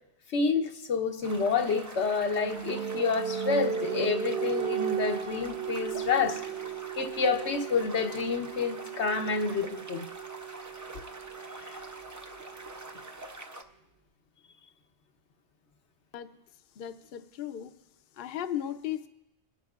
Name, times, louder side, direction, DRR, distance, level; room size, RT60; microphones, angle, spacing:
voice 1, 0.3-6.4 7.0-10.1 11.6-11.8, left 5 dB, 85° left, 5 dB, 1.2 m, -29 dB
sound 1, 1.2-13.6, right 2 dB, 20° right, 0.5 m, -45 dB
sound 2, 1.4-12.9, right 8 dB, 70° right, 1.0 m, -36 dB
voice 2, 16.7-17.7 18.1-19.1, left 10 dB, 60° left, 7 dB, 0.8 m, -36 dB
22.0 x 11.0 x 2.4 m, 0.90 s
omnidirectional pair, 1.1 m